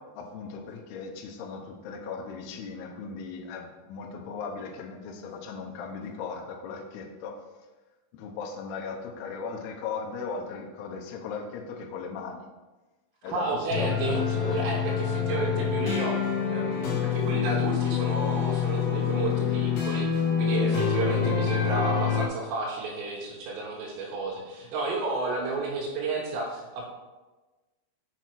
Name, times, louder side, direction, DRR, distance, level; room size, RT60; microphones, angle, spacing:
voice 1, 0.0-7.4 8.1-12.5 13.2-14.6, left 5 dB, 90° left, 2 dB, 2.3 m, -38 dB
voice 2, 13.3-26.9, right 3 dB, 85° right, -3 dB, 3.8 m, -32 dB
sound 1, 13.7-22.3, left 7 dB, 75° left, 2.2 m, -26 dB
6.9 x 6.0 x 4.5 m, 1.2 s
omnidirectional pair, 5.7 m